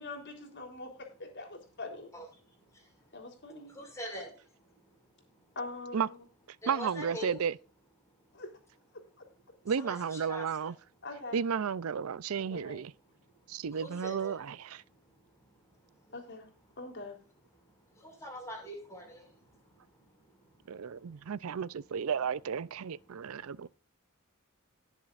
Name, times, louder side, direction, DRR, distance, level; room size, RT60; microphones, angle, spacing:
voice 1, 0.0-2.1 3.1-3.7 5.6-6.2 8.3-8.5 11.0-11.4 12.5-12.8 16.1-16.5 16.8-17.2, left 2 dB, 55° left, 3.6 m, -43 dB
voice 2, 3.8-4.3 6.6-7.4 9.8-10.4 13.8-14.3 18.0-19.2, equal, 15° left, 5.3 m, -42 dB
voice 3, 6.7-7.6 9.7-10.7 11.3-12.9 13.5-14.8 20.7-23.7, right 6 dB, 80° right, 0.5 m, -33 dB
19.0 x 7.2 x 2.5 m
head